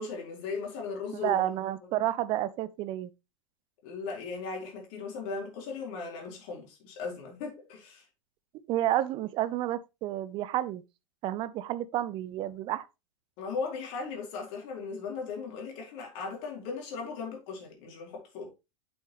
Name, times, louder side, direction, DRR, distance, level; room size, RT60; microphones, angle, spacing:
voice 1, 0.0-1.4 3.8-8.0 13.4-18.6, left 4 dB, 45° left, 4.4 m, -37 dB
voice 2, 1.2-3.1 8.7-10.8 11.2-12.8, right 13 dB, 30° right, 0.7 m, -30 dB
8.3 x 7.2 x 3.1 m
figure-of-eight pair, 95°, 16 cm